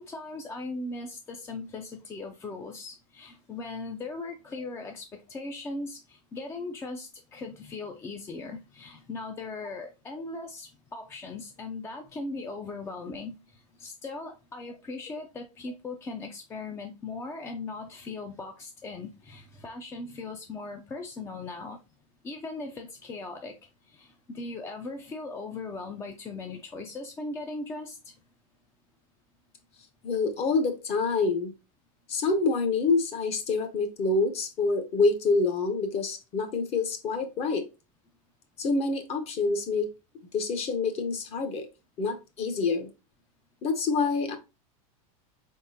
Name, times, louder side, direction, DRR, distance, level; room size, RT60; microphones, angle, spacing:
voice 1, 0.0-21.8 22.2-23.6 23.9-28.1, left 3 dB, 15° left, 0.4 m, -39 dB
voice 2, 30.0-31.5 32.1-37.7 38.6-39.9 40.3-41.7 42.0-42.9 43.6-44.4, left 3 dB, 35° left, 0.8 m, -27 dB
4.1 x 3.6 x 2.7 m
supercardioid pair, 140°, 18 cm